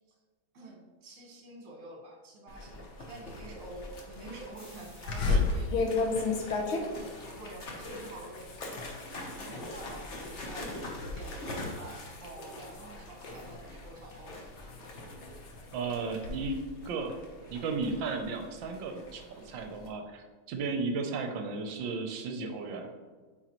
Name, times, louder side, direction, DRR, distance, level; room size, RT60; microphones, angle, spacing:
voice 1, 0.5-5.8 6.9-8.6 9.1-14.5, right 2 dB, 45° right, -1 dB, 1.7 m, -48 dB
sound 1, 2.5-19.9, left 1 dB, 45° left, 1.0 m, -45 dB
sound 2, 4.6-6.1, left 1 dB, 20° left, 1.8 m, -57 dB
sound 3, 5.1-10.4 10.8-11.2 11.6-13.6 14.2-16.4, left 4 dB, 75° left, 1.7 m, -33 dB
voice 2, 15.7-17.2 17.5-22.9, right 4 dB, 70° right, 5 dB, 1.3 m, -34 dB
9.0 x 4.4 x 3.0 m, 1.4 s
omnidirectional pair, 2.3 m